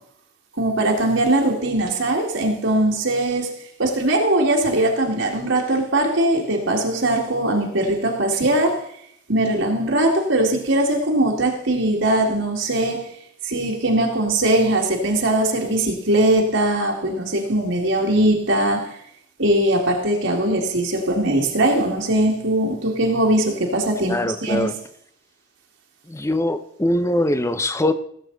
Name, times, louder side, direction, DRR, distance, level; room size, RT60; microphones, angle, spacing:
voice 1, 0.6-3.5 3.8-8.8 9.3-13.1 13.4-19.0 19.4-24.7, right 1 dB, 60° right, 0 dB, 2.2 m, -20 dB
voice 2, 24.0-24.7 26.1-27.9, left 1 dB, 15° left, 11 dB, 0.7 m, -22 dB
17.0 x 8.2 x 4.0 m, 0.70 s
head